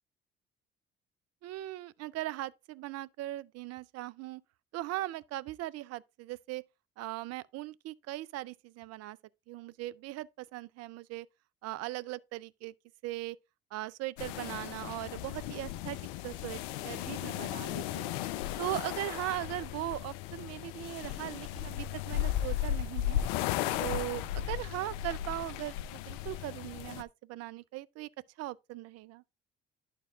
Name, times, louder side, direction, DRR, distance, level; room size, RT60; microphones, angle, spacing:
voice 1, 1.4-4.4 4.7-6.6 7.0-9.2 9.5-11.3 11.6-12.7 13.0-13.4 13.7-16.0 16.2-18.1 18.6-23.2 23.8-28.1 28.4-29.2, right 16 dB, 60° right, 0.5 m, -39 dB
sound 1, 14.2-27.0, left 12 dB, 75° left, 0.5 m, -36 dB
11.5 x 4.5 x 2.3 m
hypercardioid pair, 55°, 29 cm